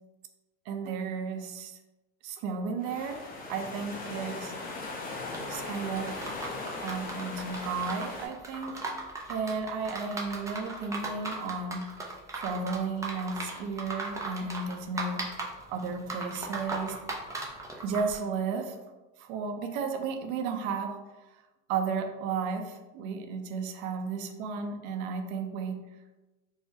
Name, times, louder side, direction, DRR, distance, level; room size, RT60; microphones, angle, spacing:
voice 1, 0.7-1.8 2.2-3.2 3.5-4.5 5.5-6.2 6.8-8.9 9.3-11.9 12.3-17.0 17.8-18.8 19.2-21.0 21.7-25.8, right 5 dB, 65° right, 6 dB, 0.6 m, -33 dB
sound 1, 2.8-8.3, left 3 dB, 20° left, 0.7 m, -38 dB
sound 2, 5.3-18.2, right 2 dB, 10° right, 0.3 m, -38 dB
4.7 x 2.1 x 2.7 m, 1.1 s
supercardioid pair, 115°, 40 cm